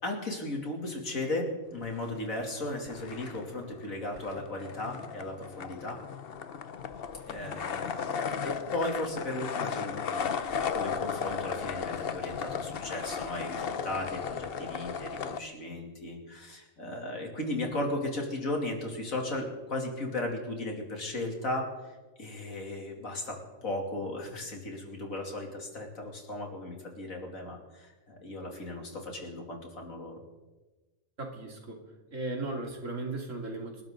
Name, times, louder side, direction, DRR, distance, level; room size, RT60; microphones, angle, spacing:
voice 1, 0.0-6.0 7.3-8.1 8.4-21.7 22.2-30.2, left 2 dB, 80° left, 1 dB, 3.3 m, -36 dB
sound 1, 1.8-2.6 2.9-15.4, left 6 dB, 50° left, 0.9 m, -35 dB
voice 2, 31.2-31.8 32.1-33.8, right 2 dB, 70° right, 2 dB, 3.0 m, -36 dB
27.5 x 12.0 x 3.9 m, 1.2 s
omnidirectional pair, 1.4 m